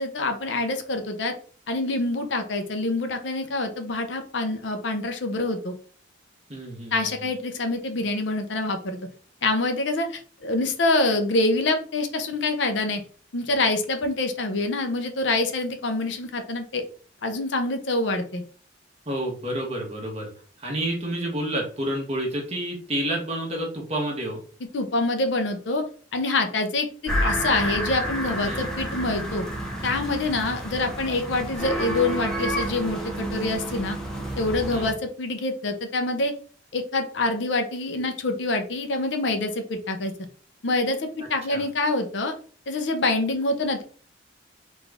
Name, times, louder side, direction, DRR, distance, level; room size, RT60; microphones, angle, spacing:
voice 1, 0.0-1.3 1.7-5.7 6.9-9.0 9.4-13.0 13.3-16.8 17.2-18.4 24.7-25.8 26.1-29.4 29.8-34.0 34.4-36.3 36.7-40.1 40.6-42.3 42.7-43.8, left 2 dB, 65° left, 6 dB, 0.6 m, -26 dB
voice 2, 6.5-7.3 19.1-20.3 20.6-24.4 28.4-28.7 34.7-34.9 41.5-41.6, right 1 dB, 35° right, 0 dB, 1.2 m, -29 dB
sound 1, 27.1-34.9, equal, 5° left, 0.9 m, -30 dB
4.0 x 2.5 x 3.4 m, 0.42 s
head